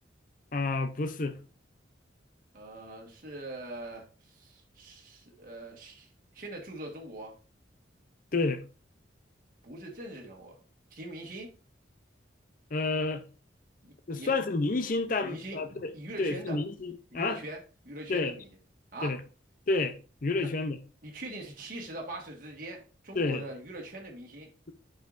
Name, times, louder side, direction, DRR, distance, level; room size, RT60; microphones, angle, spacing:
voice 1, 0.5-1.4 8.3-8.6 12.7-13.2 14.1-15.9 16.2-17.4 18.1-18.3 19.0-19.2 19.7-20.0 20.2-20.8 23.1-23.4, left 3 dB, 45° left, 0.6 m, -29 dB
voice 2, 2.5-6.1 6.3-7.3 9.6-10.5 10.9-11.5 13.8-14.3 15.2-15.6 15.9-16.6 17.1-17.6 17.8-18.5 18.9-19.1 21.0-24.5, right 2 dB, 50° right, 1.6 m, -42 dB
8.0 x 5.6 x 2.6 m
head